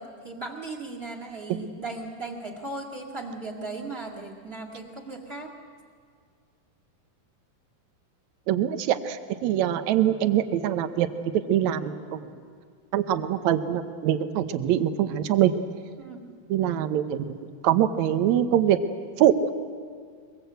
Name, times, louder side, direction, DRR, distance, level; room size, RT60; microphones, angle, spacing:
voice 1, 0.0-5.5 16.0-16.2, right 3 dB, 25° right, 3 dB, 1.4 m, -37 dB
voice 2, 8.5-11.1 11.5-12.2 12.9-15.5 16.5-17.3 17.6-18.8 19.2-19.5, right 11 dB, 75° right, 10 dB, 1.7 m, -23 dB
23.5 x 22.0 x 8.0 m, 2.1 s
omnidirectional pair, 4.4 m